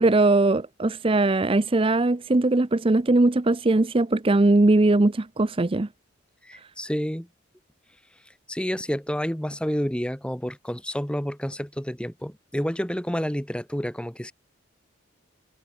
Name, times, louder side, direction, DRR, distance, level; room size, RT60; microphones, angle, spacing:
voice 1, 0.0-5.9, right 2 dB, 25° right, 0.5 m, -20 dB
voice 2, 6.4-7.3 8.5-14.3, equal, 5° left, 1.6 m, -29 dB
head